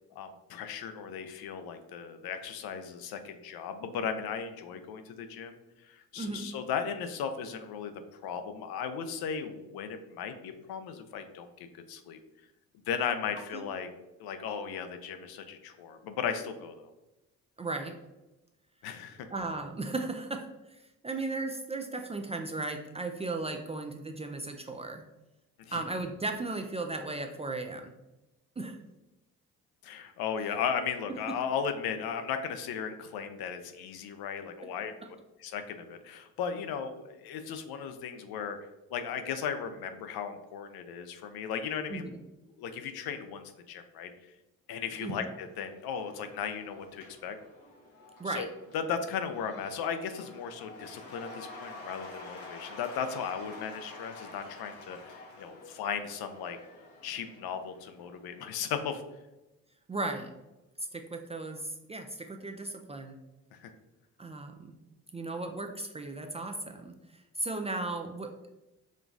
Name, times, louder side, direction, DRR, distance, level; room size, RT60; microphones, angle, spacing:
voice 1, 0.2-5.6 5.8-7.9 8.2-12.2 12.9-13.9 14.2-16.9 18.8-19.3 25.6-25.8 29.8-34.9 35.4-42.0 42.6-44.1 44.7-47.4 48.3-48.5 48.7-56.6 57.0-59.0 63.5-63.7, left 7 dB, 65° left, 8 dB, 0.6 m, -36 dB
voice 2, 6.2-6.5 13.5-13.6 17.6-18.0 19.3-25.0 25.7-27.9 28.6-28.8 31.3-31.4 41.9-42.1 45.0-45.3 48.2-48.5 59.9-60.3 60.8-63.2 64.2-64.7 65.1-68.3, right 2 dB, 15° right, 4 dB, 0.3 m, -36 dB
Cheering / Applause / Crowd, 45.3-58.7, left 2 dB, 85° left, 1.1 m, -49 dB
5.0 x 2.3 x 2.6 m, 0.99 s
hypercardioid pair, 50°, 40 cm